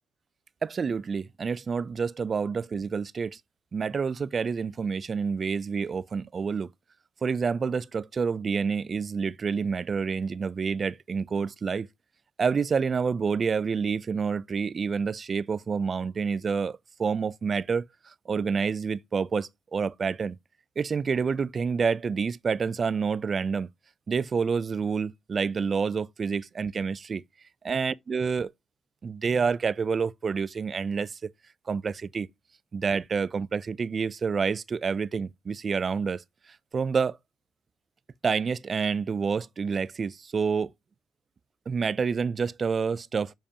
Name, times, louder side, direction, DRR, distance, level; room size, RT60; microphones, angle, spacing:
voice 1, 0.6-3.4 3.7-6.7 7.2-11.9 12.4-20.4 20.8-23.7 24.1-27.2 27.6-28.5 29.0-31.2 31.7-32.3 32.7-36.2 36.7-37.2 38.2-40.7 41.7-43.3, right 5 dB, 35° right, 0.4 m, -28 dB
7.3 x 5.0 x 2.8 m
cardioid pair, 135°, 0 cm